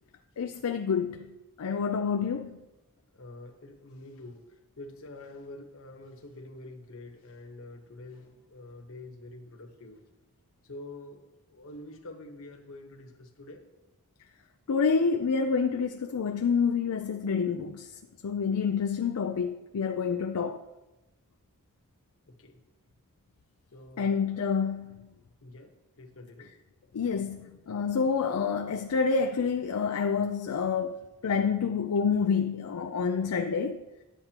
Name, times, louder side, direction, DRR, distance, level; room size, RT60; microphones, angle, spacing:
voice 1, 0.4-1.3 1.6-2.6 14.7-17.9 18.2-20.6 24.0-25.1 26.9-33.8, left 5 dB, 85° left, 0.4 m, -28 dB
voice 2, 3.1-4.4 4.8-10.0 10.6-11.2 11.5-13.6 22.3-22.6 23.7-24.2 25.4-25.7 26.0-26.5, left 2 dB, 65° left, 1.2 m, -46 dB
11.5 x 8.0 x 2.9 m
head